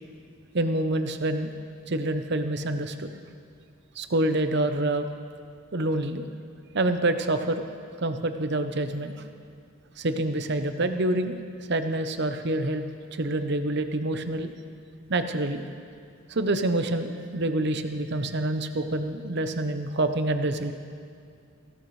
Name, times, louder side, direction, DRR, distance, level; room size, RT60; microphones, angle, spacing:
voice 1, 0.5-1.5 1.9-3.1 4.0-5.1 5.7-6.3 6.7-7.6 8.0-9.2 10.0-11.4 11.7-12.8 13.1-14.5 15.1-15.6 16.3-20.7, right 1 dB, 50° right, 8 dB, 0.7 m, -27 dB
18.5 x 15.5 x 3.2 m, 2.4 s
head